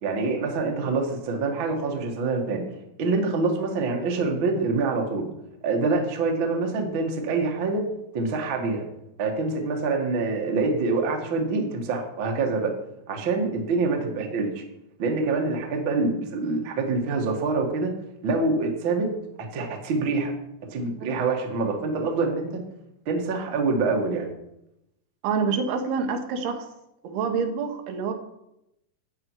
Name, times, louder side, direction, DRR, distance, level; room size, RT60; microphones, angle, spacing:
voice 1, 0.0-2.6 3.0-5.3 5.6-7.8 8.1-8.8 9.2-12.7 13.1-14.6 15.0-17.9 18.2-19.1 19.5-20.3 20.7-22.6 23.0-24.3, right 3 dB, 50° right, 1 dB, 1.6 m, -25 dB
voice 2, 25.2-26.7 27.0-28.1, right 5 dB, 75° right, 5 dB, 3.0 m, -27 dB
12.5 x 8.6 x 4.7 m, 0.84 s
omnidirectional pair, 4.7 m